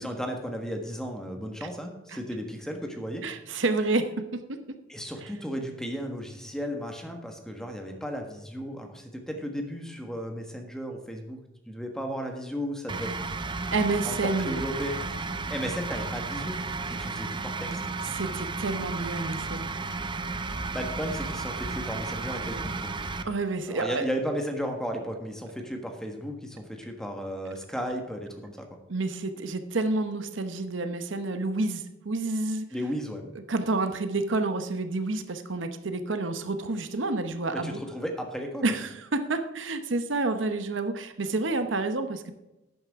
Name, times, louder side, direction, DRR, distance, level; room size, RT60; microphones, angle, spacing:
voice 1, 0.0-3.2 4.9-11.4 11.7-13.1 14.0-15.0 15.5-16.6 16.9-17.8 20.7-22.9 23.7-28.7 32.7-33.2 37.5-38.7, equal, 5° left, 3 dB, 1.4 m, -34 dB
voice 2, 3.2-4.6 13.7-14.6 18.0-19.7 23.2-24.1 28.9-32.6 33.5-37.8 38.6-42.3, right 2 dB, 75° right, 8 dB, 0.9 m, -29 dB
sound 1, 12.9-23.2, right 3 dB, 25° right, 0.6 m, -33 dB
11.5 x 9.5 x 3.6 m, 0.98 s
head